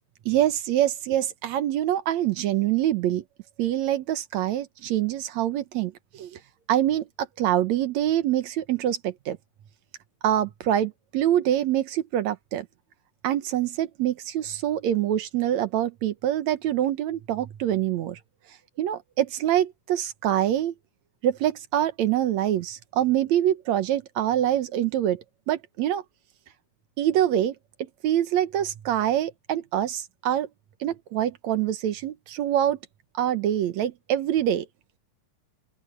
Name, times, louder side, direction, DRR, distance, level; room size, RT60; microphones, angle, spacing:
voice 1, 0.3-3.2 3.6-6.4 6.7-9.4 10.2-12.7 13.2-18.2 18.8-20.7 21.2-26.0 27.0-27.6 28.0-30.5 30.8-32.8 33.2-34.6, right 11 dB, 70° right, 2.2 m, -25 dB
open air
omnidirectional pair, 3.5 m